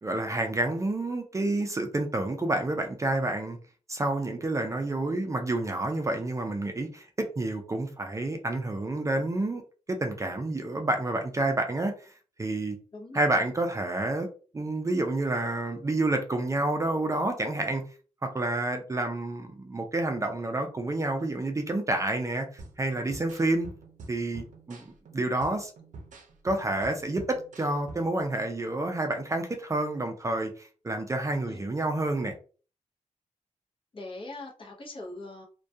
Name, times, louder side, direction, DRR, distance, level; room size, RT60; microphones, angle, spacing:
voice 1, 0.0-3.6 3.9-9.6 9.9-12.1 12.4-12.8 13.1-14.3 14.5-17.8 18.2-22.5 22.8-23.7 24.1-25.7 26.4-32.3, right 2 dB, 25° right, 4 dB, 0.4 m, -29 dB
sound 1, 22.6-28.2, right 3 dB, 85° right, 0.5 m, -47 dB
voice 2, 33.9-35.5, left 2 dB, 45° left, -1 dB, 0.7 m, -41 dB
2.2 x 2.2 x 2.6 m, 0.38 s
wide cardioid pair, 130°, 13 cm